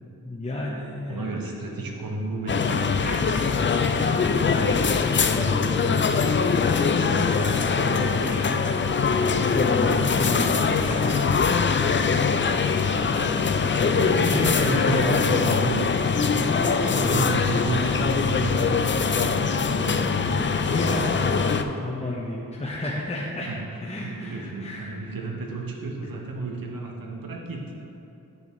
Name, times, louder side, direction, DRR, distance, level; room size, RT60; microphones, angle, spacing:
voice 1, 0.2-1.3 3.4-4.2 4.5-8.7 9.2-15.3 16.3-18.1 20.1-23.5 23.8-25.1, left 1 dB, 20° left, -5 dB, 0.9 m, -32 dB
voice 2, 1.1-3.3 13.9-15.9 16.3-16.5 16.9-20.6 23.5-23.6 24.0-27.6, right 3 dB, 75° right, 0 dB, 1.1 m, -32 dB
sound 1, 2.3-4.1 4.9-5.0 5.2-5.3 5.7-6.1 6.5-7.7 8.2-9.8 10.3-12.0 12.3-13.9 14.2-15.2 15.5-15.6 15.8-16.3 16.8-17.1 17.5-18.5 18.8-20.0, left 2 dB, 55° left, 1.0 m, -44 dB
sound 2, 2.5-21.6, left 5 dB, 35° left, 0.4 m, -22 dB
8.2 x 6.9 x 3.1 m, 2.9 s
cardioid pair, 50°, 35 cm